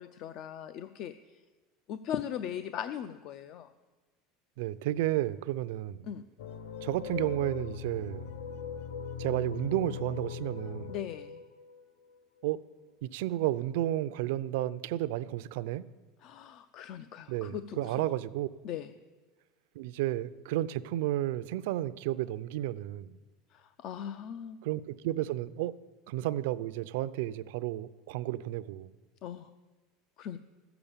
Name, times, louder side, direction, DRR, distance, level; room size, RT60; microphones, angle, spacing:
voice 1, 0.0-1.4 1.9-3.7 6.0-6.2 10.9-11.4 16.2-18.1 18.6-18.9 23.5-24.6 29.2-29.5 30.2-30.4, left 9 dB, 45° left, 0.4 m, -39 dB
voice 2, 4.6-6.1 6.8-8.3 9.2-10.9 12.4-12.6 13.0-15.9 17.3-18.5 19.8-23.2 24.6-25.7 26.1-28.9, right 14 dB, 75° right, 0.5 m, -32 dB
sound 1, 6.4-12.5, left 7 dB, 75° left, 0.8 m, -40 dB
14.0 x 6.9 x 8.8 m
supercardioid pair, 160°, 0 cm